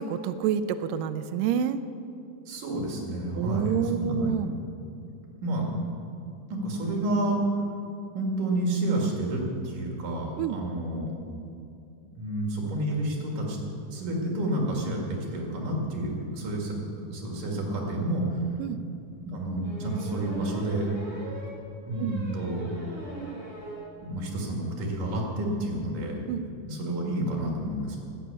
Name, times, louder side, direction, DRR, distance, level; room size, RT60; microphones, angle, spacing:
voice 1, 0.0-1.8 3.4-4.5 10.4-10.6 18.6-18.8 22.0-22.1 26.3-26.4, right 8 dB, 90° right, 11 dB, 1.9 m, -28 dB
voice 2, 2.5-4.3 5.4-5.7 6.5-7.4 8.1-11.1 12.1-13.6 13.9-18.4 19.2-20.9 21.9-22.6 24.0-26.2 26.6-28.0, right 1 dB, 60° right, -1 dB, 3.9 m, -30 dB
sound 1, 19.6-23.9 24.3-24.4 24.6-24.7 24.9-25.2, right 2 dB, 35° right, 4.0 m, -40 dB
12.5 x 10.5 x 8.5 m, 2.6 s
omnidirectional pair, 4.5 m